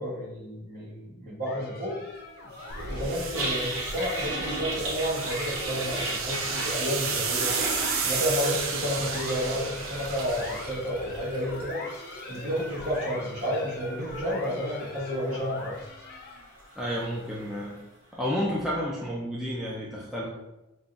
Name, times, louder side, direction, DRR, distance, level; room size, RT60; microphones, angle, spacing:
voice 1, 0.0-2.0 2.9-7.5 8.0-11.8 12.3-15.8, equal, 40° right, -6 dB, 1.4 m, -31 dB
sound 1, 1.5-16.6, left 2 dB, 45° left, 0.6 m, -42 dB
Toilet flush, 2.5-17.7, right 1 dB, 90° right, 1.0 m, -37 dB
sound 2, 2.7-11.3, right 5 dB, 70° right, 0.5 m, -33 dB
voice 2, 16.8-17.8 18.1-20.3, equal, ahead, -6 dB, 0.3 m, -31 dB
5.3 x 2.2 x 2.4 m, 0.98 s
head